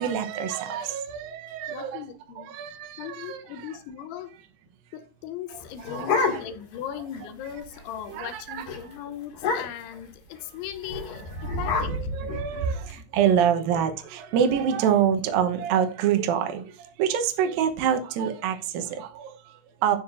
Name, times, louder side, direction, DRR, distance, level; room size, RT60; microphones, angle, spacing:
voice 1, 0.0-2.1 2.4-3.7 5.9-6.4 8.1-8.6 11.4-20.0, right 8 dB, 85° right, 2.0 m, -26 dB
voice 2, 1.7-2.6 3.0-4.4 4.9-12.0 12.3-12.4, left 10 dB, 80° left, 3.1 m, -38 dB
sound 1, 5.5-6.8 7.1-7.2 7.5-7.8 8.2-8.4 8.7-8.8 9.3-10.0 10.8-12.9, left 3 dB, 50° left, 3.3 m, -29 dB
14.5 x 5.8 x 2.5 m
omnidirectional pair, 5.5 m